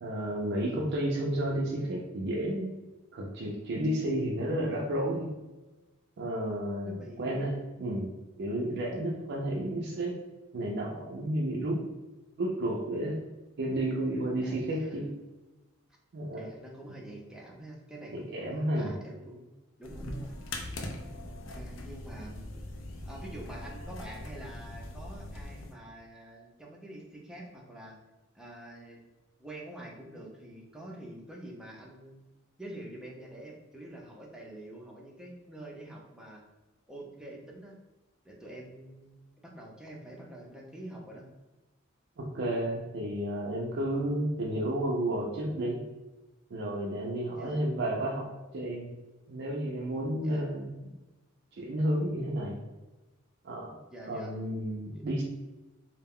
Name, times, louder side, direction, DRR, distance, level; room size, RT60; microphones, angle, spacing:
voice 1, 0.0-2.7 3.1-5.3 6.2-10.2 10.5-11.8 12.4-13.2 13.6-15.1 16.1-16.4 18.1-19.0 42.2-45.8 46.5-48.3 48.5-48.9 49.3-50.9 51.6-52.6 53.4-53.8 54.0-55.2, right 1 dB, 60° right, -1 dB, 0.4 m, -31 dB
voice 2, 6.8-7.5 14.4-15.0 16.4-19.5 19.8-20.3 21.2-22.5 23.1-28.0 28.3-29.0 29.4-32.2 32.6-36.4 36.9-37.8 38.2-41.3 47.3-47.6 50.2-50.4 53.9-54.3 54.9-55.0, right 1 dB, 5° right, -2 dB, 0.5 m, -46 dB
sound 1, 19.8-25.7, left 1 dB, 80° left, 0.4 m, -41 dB
2.3 x 2.1 x 3.5 m, 1.1 s
head